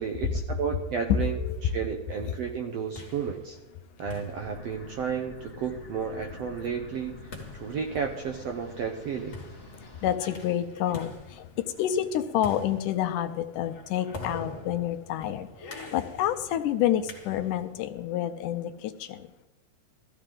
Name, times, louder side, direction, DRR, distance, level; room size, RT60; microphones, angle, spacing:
voice 1, 0.0-3.6 4.0-9.4, right 6 dB, 75° right, 3 dB, 1.5 m, -32 dB
voice 2, 1.4-1.7 2.3-2.4 9.8-19.3, left 11 dB, 80° left, 8 dB, 2.1 m, -29 dB
sound 1, 2.6-17.8, left 3 dB, 30° left, 1.9 m, -46 dB
sound 2, 4.4-10.2, left 4 dB, 10° left, 1.1 m, -47 dB
17.0 x 14.0 x 3.8 m, 1.0 s
omnidirectional pair, 3.9 m